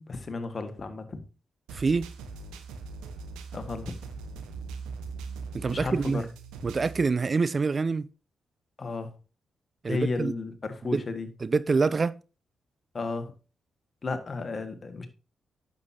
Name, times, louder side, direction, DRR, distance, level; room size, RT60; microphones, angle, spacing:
voice 1, 0.1-1.2 3.5-3.9 5.7-6.2 8.8-9.1 9.9-11.3 12.9-13.3 14.0-15.1, left 3 dB, 45° left, 1.6 m, -33 dB
voice 2, 1.7-2.1 5.5-6.2 6.6-8.0 9.8-10.3 10.9-11.0 11.4-12.1, right 4 dB, 45° right, 0.5 m, -26 dB
sound 1, 1.7-7.0, right 4 dB, 85° right, 0.9 m, -40 dB
9.5 x 7.3 x 2.8 m
hypercardioid pair, 45°, 0 cm